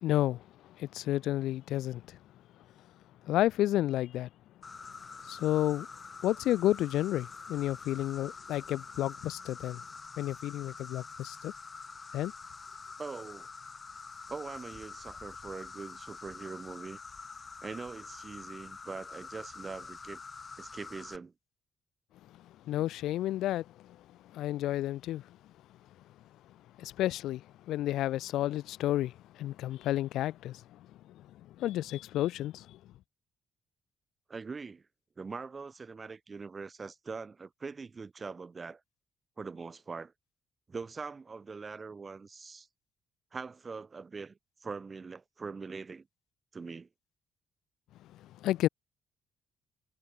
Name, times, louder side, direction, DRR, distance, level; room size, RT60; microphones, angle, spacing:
voice 1, 0.0-2.2 3.2-4.3 5.2-5.9 6.2-9.8 10.2-11.5 12.1-12.3 22.7-24.0 24.3-25.3 26.8-30.8 31.1-32.8 48.2-48.7, left 14 dB, 85° left, 0.5 m, -31 dB
Insect, 4.6-21.2, left 4 dB, 35° left, 0.8 m, -46 dB
voice 2, 13.0-13.5 14.3-17.0 17.6-20.2 20.6-21.3 34.3-34.8 35.2-38.8 39.4-40.1 40.7-42.7 43.3-46.1 46.5-46.9, right 4 dB, 35° right, 1.2 m, -42 dB
cardioid pair, 90°, 0 cm